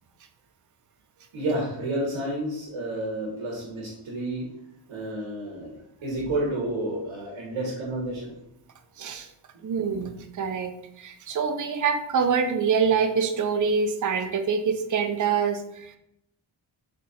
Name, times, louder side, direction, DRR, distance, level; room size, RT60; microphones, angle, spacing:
voice 1, 1.3-4.5 4.9-8.3, right 1 dB, 85° right, -2 dB, 1.4 m, -30 dB
voice 2, 9.0-9.3 9.6-16.0, right 6 dB, 40° right, 6 dB, 0.6 m, -25 dB
4.1 x 3.1 x 4.2 m, 0.80 s
cardioid pair, 75°, 49 cm